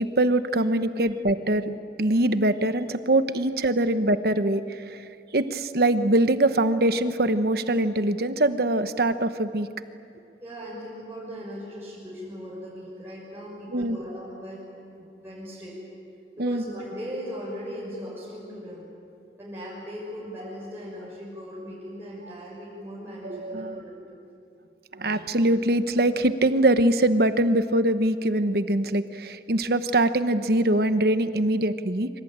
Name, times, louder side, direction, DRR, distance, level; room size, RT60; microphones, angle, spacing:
voice 1, 0.0-5.0 5.3-9.7 13.7-14.0 16.4-16.6 23.2-23.8 24.9-32.1, right 1 dB, 60° right, 10 dB, 1.1 m, -23 dB
voice 2, 10.4-15.8 16.4-18.9 19.4-24.2, equal, 15° right, -7 dB, 6.4 m, -38 dB
26.5 x 25.5 x 8.9 m, 2.5 s
head